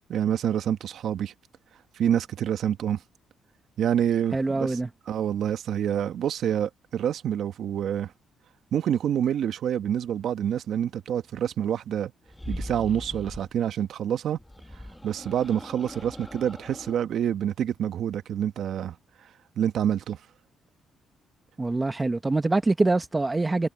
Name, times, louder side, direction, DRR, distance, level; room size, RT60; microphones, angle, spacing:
voice 1, 0.1-1.3 1.9-3.0 3.8-4.8 5.1-8.1 8.7-12.1 12.5-14.4 14.7-19.0 19.6-20.2, right 9 dB, 70° right, 1.1 m, -27 dB
voice 2, 4.3-4.9 21.6-23.7, right 2 dB, 20° right, 1.4 m, -24 dB
sound 1, 12.3-13.5 14.4-17.0, left 1 dB, 5° left, 2.1 m, -40 dB
cardioid pair, 90°, 0 cm